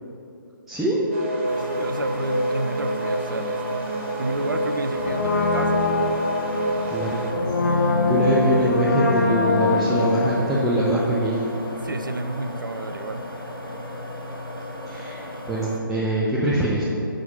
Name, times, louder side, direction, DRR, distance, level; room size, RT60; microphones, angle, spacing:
voice 1, 0.7-1.0 6.9-7.2 7.6-11.5 14.9-15.2 15.5-16.8, right 1 dB, ahead, -9 dB, 0.3 m, -23 dB
sound 1, 1.1-7.3, right 1 dB, 35° right, 0.8 m, -28 dB
sound 2, 1.4-15.8, left 1 dB, 85° left, 1.0 m, -35 dB
voice 2, 1.6-3.9 4.2-6.1 11.7-13.2, right 2 dB, 70° right, 9 dB, 0.5 m, -31 dB
Brass instrument, 5.0-11.8 12.1-12.2, left 3 dB, 50° left, 0.8 m, -24 dB
6.4 x 5.1 x 5.4 m, 2.7 s
figure-of-eight pair, 140°, 12 cm